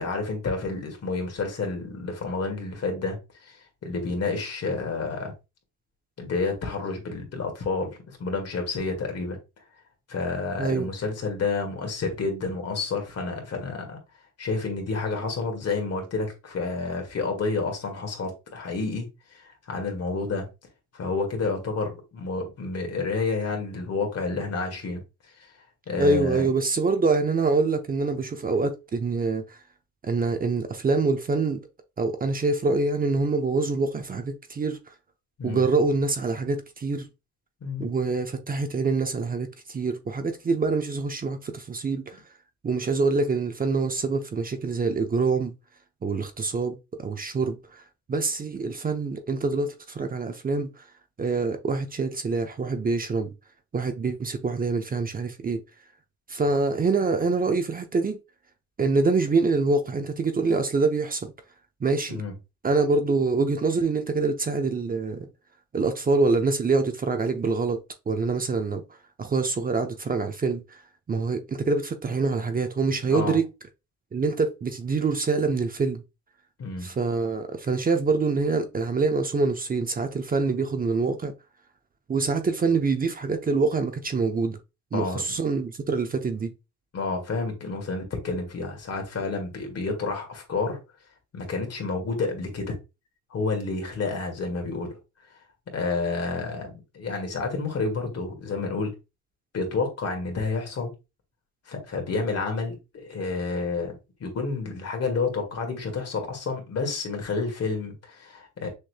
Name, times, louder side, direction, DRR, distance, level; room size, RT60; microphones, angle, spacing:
voice 1, 0.0-5.3 6.2-9.4 10.1-14.0 14.4-20.5 20.9-25.0 25.4-26.5 35.4-35.6 37.6-37.9 62.1-62.3 73.1-73.4 76.6-76.9 84.9-85.2 86.9-90.8 91.3-92.8 93.3-95.0 95.7-98.9 99.5-100.9 101.7-103.9 104.2-108.7, left 4 dB, 55° left, 1.8 m, -30 dB
voice 2, 26.0-29.6 30.0-31.6 32.0-34.8 35.4-37.1 37.8-42.2 42.6-45.5 46.0-47.8 48.1-50.8 51.2-53.3 53.7-55.6 56.3-58.2 58.8-61.3 61.8-62.2 62.6-65.3 65.7-68.8 69.2-70.8 71.1-73.5 74.1-76.0 76.8-81.3 82.1-84.6 84.9-86.5, right 4 dB, 30° right, 0.6 m, -25 dB
6.4 x 3.1 x 2.2 m
cardioid pair, 90°, 30 cm